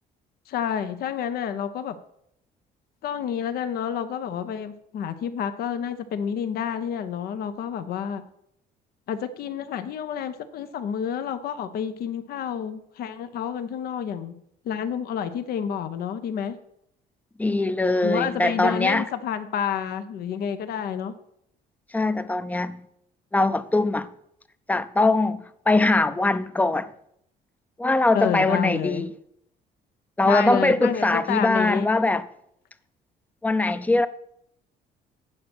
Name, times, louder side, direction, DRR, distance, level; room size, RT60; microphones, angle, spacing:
voice 1, 0.5-2.0 3.0-8.2 9.1-14.3 14.6-16.6 18.0-21.1 28.1-29.1 30.2-31.9, left 8 dB, 65° left, 0.8 m, -29 dB
voice 2, 17.4-19.0 21.9-22.8 23.3-24.1 24.7-26.9 27.8-29.1 30.2-32.2 33.4-34.1, left 2 dB, 10° left, 0.5 m, -22 dB
8.7 x 6.5 x 6.1 m
cardioid pair, 110°, 17 cm